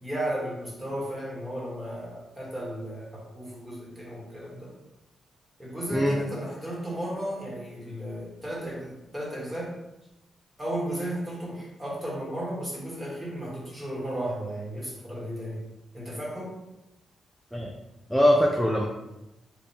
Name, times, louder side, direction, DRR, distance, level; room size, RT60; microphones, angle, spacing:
voice 1, 0.0-4.7 5.6-9.8 10.6-15.6 15.9-16.6, right 1 dB, 15° right, -5 dB, 1.4 m, -34 dB
voice 2, 5.9-6.2 17.5-17.7 18.1-18.8, equal, ahead, -1 dB, 0.4 m, -22 dB
3.3 x 2.5 x 4.3 m, 0.92 s
cardioid pair, 100°, 0 cm